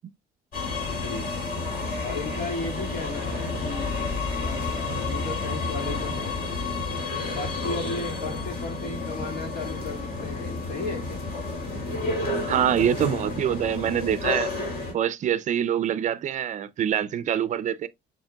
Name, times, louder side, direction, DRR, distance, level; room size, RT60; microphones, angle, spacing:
sound 1, 0.5-14.9, left 3 dB, 55° left, 3.1 m, -30 dB
voice 1, 0.9-1.3 2.0-4.1 4.9-6.4 6.9-7.0 7.3-11.2, left 3 dB, 75° left, 2.1 m, -35 dB
voice 2, 12.5-14.5 14.9-17.9, right 9 dB, 45° right, 0.5 m, -25 dB
7.2 x 3.0 x 2.3 m
cardioid pair, 110°, 17 cm